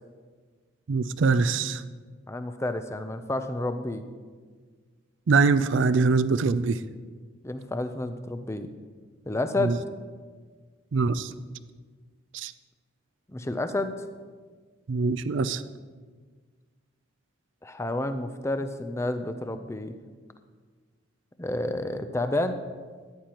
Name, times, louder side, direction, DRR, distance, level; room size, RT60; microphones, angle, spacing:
voice 1, 0.9-1.8 5.3-6.8 9.6-9.8 10.9-11.3 12.3-12.5 14.9-15.6, right 4 dB, 65° right, 14 dB, 0.4 m, -23 dB
voice 2, 2.3-4.0 7.4-8.7 9.3-9.8 13.3-13.9 17.6-19.9 21.4-22.6, left 2 dB, 15° left, 9 dB, 0.5 m, -30 dB
14.0 x 10.0 x 3.0 m, 1.5 s
head